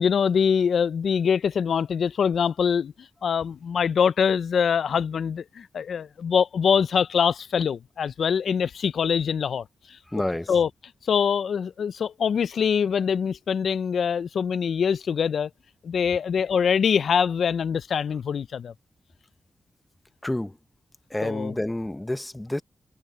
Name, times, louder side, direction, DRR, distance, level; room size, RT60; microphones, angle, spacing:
voice 1, 0.0-10.0 10.5-10.7 11.0-15.5 15.8-18.7 21.2-21.5, left 7 dB, 80° left, 0.3 m, -24 dB
voice 2, 10.1-10.5 20.2-20.6 21.1-22.6, left 1 dB, 10° left, 0.8 m, -29 dB
wide cardioid pair, 145°, 0 cm